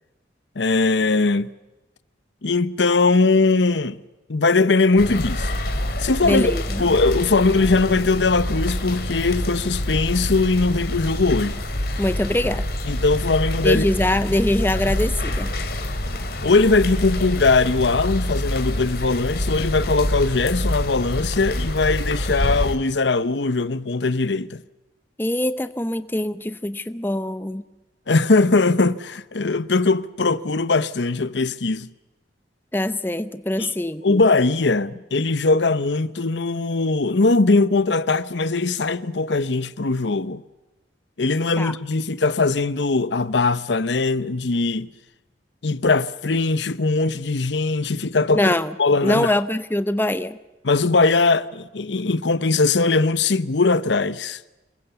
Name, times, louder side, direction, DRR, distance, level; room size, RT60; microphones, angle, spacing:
voice 1, 0.6-1.5 2.4-4.0 4.3-5.5 6.0-11.6 12.9-13.8 16.4-24.6 28.1-31.9 33.6-33.7 34.0-40.4 41.2-44.9 45.6-48.5 48.8-49.3 50.6-54.4, left 3 dB, 80° left, 0.9 m, -20 dB
sound 1, 5.0-22.8, left 1 dB, 55° left, 2.6 m, -26 dB
voice 2, 6.2-6.9 12.0-12.7 13.6-15.5 25.2-27.6 32.7-34.0 41.6-41.7 48.3-48.7 49.0-50.4, left 1 dB, 10° left, 0.7 m, -23 dB
26.5 x 23.0 x 7.0 m
head